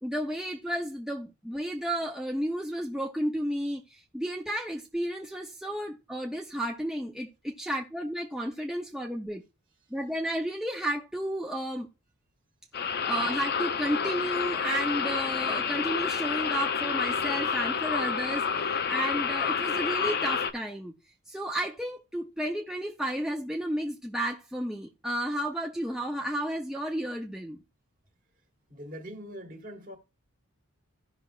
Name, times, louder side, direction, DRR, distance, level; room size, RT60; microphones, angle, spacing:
voice 1, 0.0-9.4 9.9-11.9 13.1-20.9 21.3-27.6, right 1 dB, ahead, 0.5 m, -32 dB
sound 1, 12.7-20.5, left 6 dB, 45° left, 0.6 m, -29 dB
voice 2, 28.7-30.0, equal, 40° right, 1.8 m, -42 dB
15.5 x 5.7 x 2.3 m
head